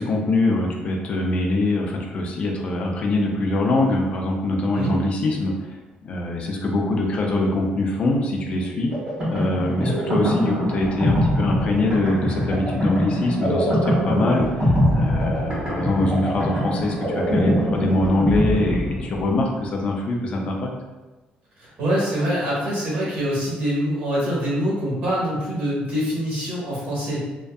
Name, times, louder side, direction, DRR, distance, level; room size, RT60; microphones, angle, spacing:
voice 1, 0.0-5.8 6.0-8.9 9.3-20.7, left 2 dB, 40° left, 0 dB, 0.4 m, -23 dB
sound 1, 8.9-19.4, equal, 35° right, 1.0 m, -23 dB
voice 2, 9.8-10.2 21.6-27.2, equal, 70° right, -7 dB, 1.3 m, -25 dB
2.5 x 2.2 x 2.3 m, 1.1 s
cardioid pair, 175°, 3 cm